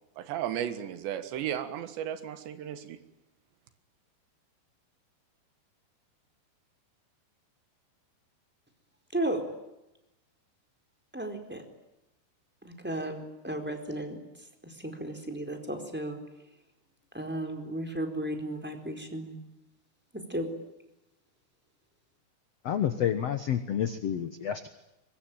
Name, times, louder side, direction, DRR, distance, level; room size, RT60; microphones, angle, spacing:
voice 1, 0.2-3.0, right 10 dB, 85° right, 10 dB, 3.9 m, -34 dB
voice 2, 9.1-9.5 11.1-11.6 12.6-16.2 17.1-19.4 20.1-20.5, right 1 dB, ahead, 5 dB, 3.8 m, -34 dB
voice 3, 22.6-24.7, left 9 dB, 85° left, 10 dB, 1.4 m, -29 dB
24.5 x 23.0 x 9.1 m, 0.93 s
omnidirectional pair, 4.9 m